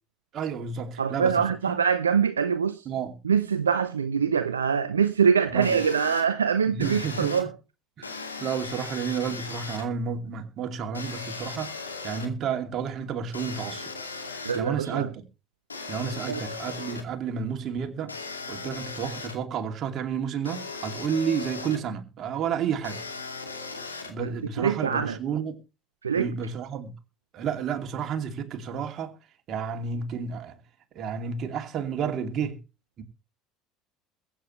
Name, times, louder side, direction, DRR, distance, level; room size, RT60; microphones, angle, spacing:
voice 1, 0.3-1.8 2.9-3.1 5.5-5.8 6.7-7.5 8.0-13.9 14.3-15.2 15.9-18.1 18.5-23.0 24.1-25.6 26.1-26.9 27.3-29.2 29.5-30.6 30.9-32.6 33.0-33.1, right 7 dB, 45° right, 2.6 m, -31 dB
voice 2, 1.0-2.8 3.2-7.5 14.4-15.1 16.3-16.4 24.2-24.3 24.6-25.2 26.0-26.3, right 6 dB, 85° right, 0.7 m, -24 dB
sound 1, 5.6-6.2 6.8-7.4 8.0-9.8 10.9-12.3 13.3-14.6 15.7-17.0 18.1-19.4 20.5-21.8 22.8-24.1, left 4 dB, 90° left, 2.3 m, -37 dB
22.5 x 9.1 x 3.2 m
figure-of-eight pair, 65°, 0 cm